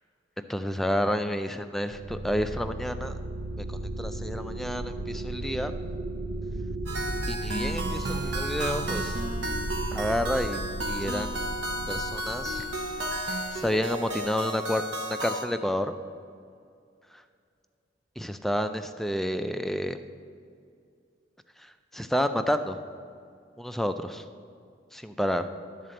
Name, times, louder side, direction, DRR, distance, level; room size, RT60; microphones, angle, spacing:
voice 1, 0.5-3.2 3.7-5.7 7.3-9.2 9.9-11.3 11.9-12.7 13.3-15.9 18.2-20.0 21.9-22.8 23.6-24.2 24.9-25.5, equal, ahead, 8 dB, 0.3 m, -30 dB
sound 1, 1.9-14.2, right 2 dB, 90° right, 0.6 m, -35 dB
sound 2, 6.9-15.5, right 1 dB, 65° right, 1.0 m, -33 dB
12.0 x 4.1 x 7.6 m, 2.3 s
head